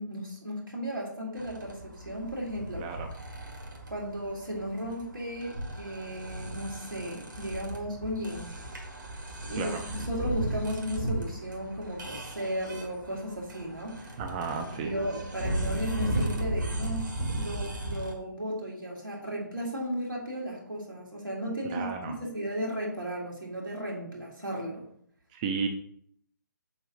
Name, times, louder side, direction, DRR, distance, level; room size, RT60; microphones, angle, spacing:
voice 1, 0.0-2.9 3.9-8.5 9.4-14.2 14.5-24.8, equal, 85° right, -3 dB, 2.6 m, -35 dB
sound 1, 1.4-18.1, right 1 dB, 70° right, 1.9 m, -36 dB
voice 2, 2.8-3.1 9.6-9.8 14.2-14.9 21.7-22.2 25.3-25.7, right 5 dB, 20° right, 4 dB, 0.5 m, -33 dB
6.9 x 2.8 x 5.1 m, 0.65 s
figure-of-eight pair, 140°, 11 cm